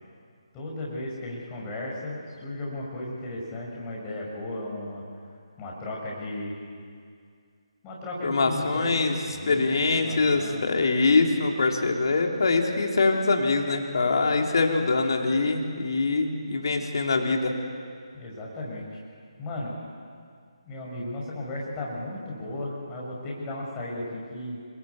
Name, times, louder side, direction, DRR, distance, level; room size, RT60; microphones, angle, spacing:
voice 1, 0.5-5.0 5.6-6.6 7.8-9.7 9.9-10.7 18.1-19.0 19.4-19.7 20.6-24.6, left 1 dB, 15° left, -4 dB, 6.3 m, -35 dB
voice 2, 8.2-9.2 9.5-17.5, left 3 dB, 50° left, 2 dB, 3.6 m, -23 dB
29.0 x 22.0 x 8.4 m, 2.2 s
figure-of-eight pair, 150°, 3 cm